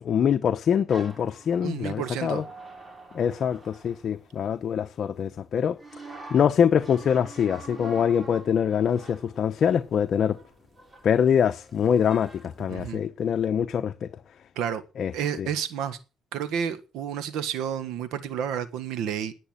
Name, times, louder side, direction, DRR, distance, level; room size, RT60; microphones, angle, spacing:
voice 1, 0.0-2.4 3.1-5.8 6.3-10.4 11.0-14.1 15.0-15.1 15.4-15.5, left 8 dB, 60° left, 0.9 m, -24 dB
sound 1, 0.9-4.9 5.8-12.9, right 3 dB, 25° right, 3.3 m, -47 dB
voice 2, 1.6-2.4 12.7-13.0 14.5-14.8 15.1-16.0 16.3-19.3, right 8 dB, 90° right, 1.5 m, -30 dB
11.0 x 9.2 x 8.8 m
cardioid pair, 90°, 0 cm